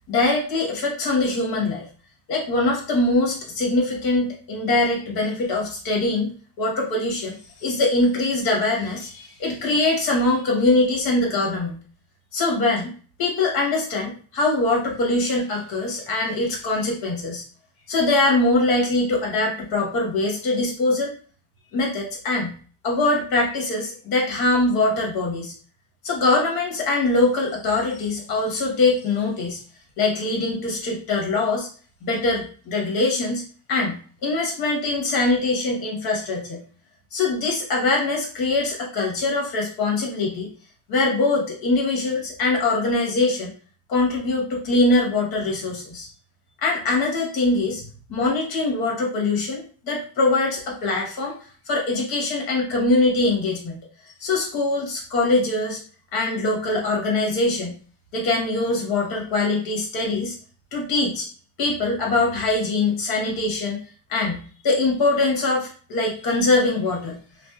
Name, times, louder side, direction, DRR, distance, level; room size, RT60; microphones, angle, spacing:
voice 1, 0.1-1.9 2.3-6.3 6.6-11.8 12.3-12.9 13.2-17.4 17.9-21.1 21.7-22.5 22.8-25.5 26.0-29.6 30.0-31.7 32.0-33.4 33.7-36.6 37.1-40.5 40.9-43.5 43.9-46.1 46.6-47.8 48.1-51.3 51.7-53.8 54.2-55.8 56.1-57.8 58.1-60.3 60.7-61.3 61.6-63.8 64.1-67.2, left 2 dB, 65° left, -1 dB, 1.2 m, -23 dB
2.5 x 2.0 x 2.4 m, 0.41 s
supercardioid pair, 90°, 39 cm